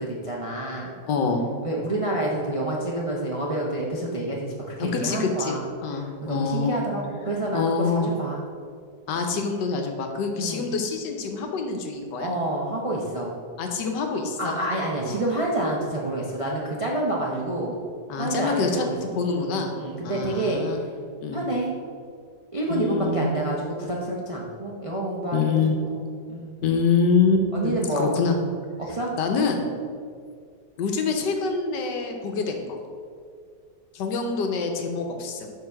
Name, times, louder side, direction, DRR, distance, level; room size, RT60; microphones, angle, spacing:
voice 1, 0.0-0.9 1.6-5.7 6.2-8.5 10.4-10.7 12.2-13.4 14.4-17.7 18.2-19.0 19.3-20.9 21.3-21.8 22.5-25.5 25.9-26.0 26.3-26.6 27.5-28.1 28.8-29.1, right 1 dB, 45° right, -3 dB, 0.4 m, -28 dB
voice 2, 1.1-1.5 4.8-5.6 5.8-6.8 7.5-8.1 9.1-12.3 13.6-14.6 15.0-15.2 18.1-18.9 19.1-19.7 20.0-20.8 21.2-21.5 22.7-23.2 25.3-25.8 26.6-28.4 29.2-29.7 30.8-32.8 33.9-35.5, left 4 dB, 85° left, 4 dB, 1.5 m, -25 dB
6.7 x 4.0 x 5.8 m, 2.1 s
omnidirectional pair, 1.9 m